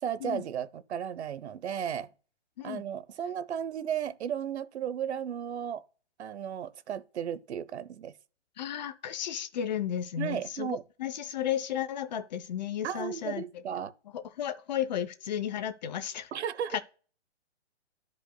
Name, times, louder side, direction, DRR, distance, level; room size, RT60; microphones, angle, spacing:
voice 1, 0.0-2.1 2.6-5.8 6.2-8.1 10.2-10.8 12.8-13.9 16.3-16.8, right 9 dB, 65° right, 0.9 m, -34 dB
voice 2, 8.6-13.6 14.1-16.3 16.7-16.8, left 9 dB, 35° left, 0.6 m, -34 dB
13.0 x 5.3 x 2.2 m
hypercardioid pair, 150°, 36 cm